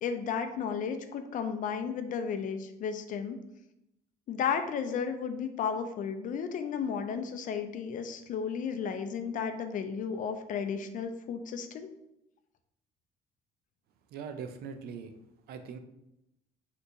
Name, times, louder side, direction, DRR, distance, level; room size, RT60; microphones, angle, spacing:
voice 1, 0.0-3.4 4.3-11.9, left 6 dB, 50° left, 8 dB, 0.4 m, -33 dB
voice 2, 14.1-15.1 15.5-15.8, right 6 dB, 65° right, 8 dB, 0.4 m, -41 dB
2.9 x 2.6 x 3.5 m, 0.85 s
cardioid pair, 110°, 17 cm